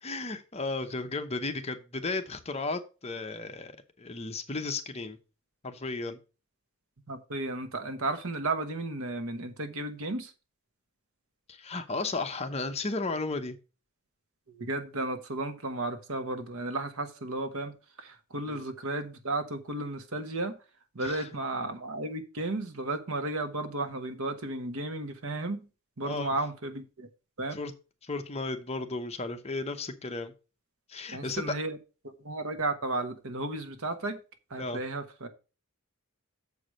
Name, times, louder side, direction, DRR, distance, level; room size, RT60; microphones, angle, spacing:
voice 1, 0.0-5.2 5.6-6.2 11.5-13.6 18.4-18.6 21.0-21.3 26.0-26.3 27.5-27.7 28.0-30.3 30.9-31.4 34.6-34.8, left 3 dB, 30° left, 0.8 m, -34 dB
voice 2, 7.1-10.3 14.5-17.7 18.0-20.6 20.9-25.7 26.0-27.1 27.4-27.5 31.1-31.8 32.2-34.2 34.5-35.3, right 2 dB, 70° right, 1.2 m, -33 dB
7.1 x 4.8 x 6.3 m
head